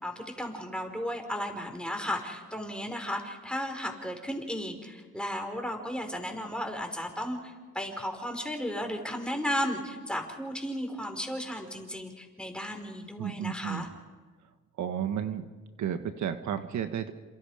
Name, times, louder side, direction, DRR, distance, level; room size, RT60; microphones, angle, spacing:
voice 1, 0.0-13.9, equal, 5° left, 3 dB, 5.2 m, -34 dB
voice 2, 13.2-13.9 14.8-15.4 15.8-17.1, right 9 dB, 70° right, 7 dB, 1.6 m, -32 dB
28.5 x 27.5 x 5.2 m, 1.4 s
cardioid pair, 90°, 30 cm